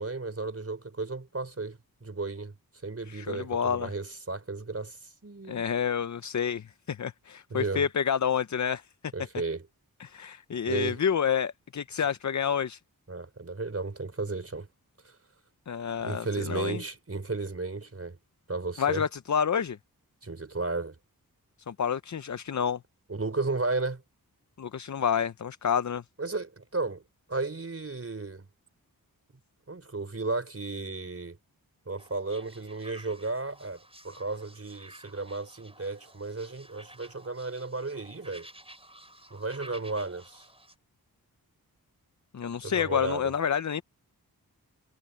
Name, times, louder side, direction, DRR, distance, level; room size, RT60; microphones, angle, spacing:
voice 1, 0.0-2.5 2.8-5.6 7.5-7.8 9.1-9.7 10.7-11.0 13.1-14.7 15.0-15.2 16.0-18.2 18.5-19.0 20.2-21.0 23.1-24.0 26.2-27.0 27.3-28.5 29.7-31.4 31.9-38.5 39.3-40.5 42.6-43.3, right 3 dB, 40° right, 4.4 m, -34 dB
voice 2, 3.1-3.9 5.5-8.9 10.0-12.8 15.7-16.8 18.8-19.8 21.7-22.8 24.6-26.0 42.3-43.8, left 7 dB, 50° left, 0.6 m, -29 dB
sound 1, 32.0-40.7, right 1 dB, 15° right, 5.0 m, -52 dB
wide cardioid pair, 80°, 37 cm